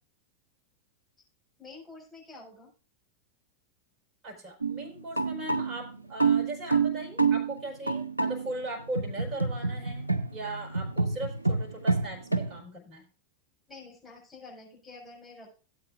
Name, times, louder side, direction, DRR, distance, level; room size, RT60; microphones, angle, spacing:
voice 1, 1.6-2.7 13.7-15.6, left 3 dB, 5° left, -4 dB, 5.9 m, -48 dB
voice 2, 4.2-13.1, right 1 dB, 25° right, 0 dB, 4.7 m, -39 dB
sound 1, 4.6-12.6, right 4 dB, 85° right, 0.8 m, -28 dB
16.5 x 8.4 x 2.5 m, 0.35 s
figure-of-eight pair, 90°, 0 cm